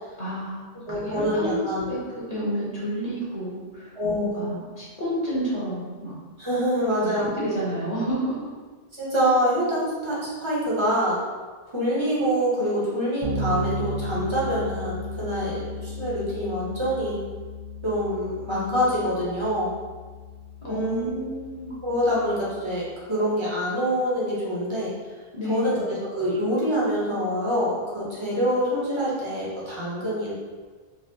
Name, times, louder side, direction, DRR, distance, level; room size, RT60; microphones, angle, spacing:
voice 1, 0.2-2.0 2.3-3.9 4.2-6.1 7.0-8.4 20.6-21.7 25.3-25.8, right 1 dB, 35° left, -8 dB, 1.0 m, -30 dB
voice 2, 0.9-2.0 3.9-4.4 6.4-7.3 8.9-11.2 11.7-17.2 17.8-19.7 20.6-21.2 21.8-24.9 25.5-30.3, equal, 30° right, -7 dB, 0.8 m, -25 dB
Bass guitar, 13.2-22.9, left 1 dB, 65° right, 0.8 m, -35 dB
4.1 x 2.0 x 2.6 m, 1.4 s
omnidirectional pair, 1.2 m